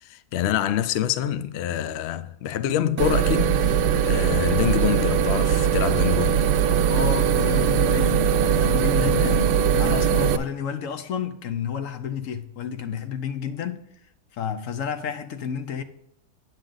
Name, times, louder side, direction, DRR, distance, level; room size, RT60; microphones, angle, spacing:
voice 1, 0.0-6.5 9.0-9.4 10.1-10.3, left 11 dB, 80° left, 0.5 m, -26 dB
sound 1, 3.0-10.4, right 8 dB, 90° right, 1.2 m, -21 dB
voice 2, 6.9-8.3 8.6-13.8 14.3-15.8, left 7 dB, 60° left, 1.1 m, -30 dB
8.8 x 7.5 x 3.9 m
omnidirectional pair, 1.7 m